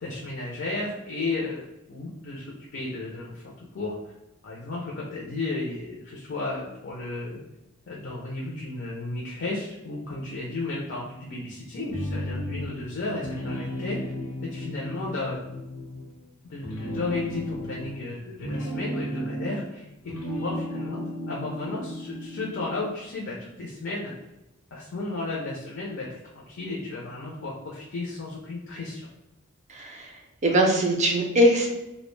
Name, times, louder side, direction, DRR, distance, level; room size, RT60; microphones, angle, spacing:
voice 1, 0.0-4.0 4.4-7.4 7.9-14.0 14.4-15.5 16.4-21.0 21.3-24.1 24.7-29.1, left 2 dB, 55° left, -4 dB, 0.4 m, -33 dB
sound 1, 11.9-12.9 13.2-16.2 16.6-19.7 20.0-22.7, equal, 90° left, 0.7 m, -34 dB
voice 2, 29.7-31.7, right 1 dB, 35° right, 1 dB, 0.4 m, -22 dB
2.4 x 2.1 x 3.1 m, 0.94 s
head